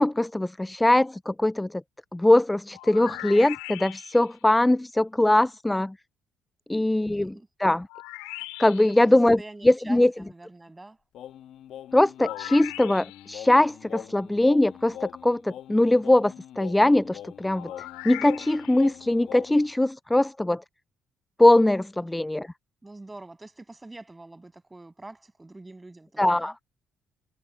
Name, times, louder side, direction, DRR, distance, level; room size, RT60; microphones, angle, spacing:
voice 1, 0.0-1.8 2.1-5.9 6.7-7.3 7.6-7.9 8.6-9.4 9.6-10.1 11.9-17.7 18.0-20.6 21.4-22.5 26.2-26.5, left 1 dB, 10° left, 0.4 m, -21 dB
sound 1, 2.7-4.4 7.9-9.1 12.2-13.4 17.5-18.9, left 23 dB, 85° left, 2.2 m, -40 dB
voice 2, 6.7-7.5 9.0-9.1 9.4-11.0 22.8-26.5, right 2 dB, 20° right, 7.5 m, -45 dB
Singing, 11.1-19.8, left 11 dB, 70° left, 1.7 m, -43 dB
hypercardioid pair, 50°, 0 cm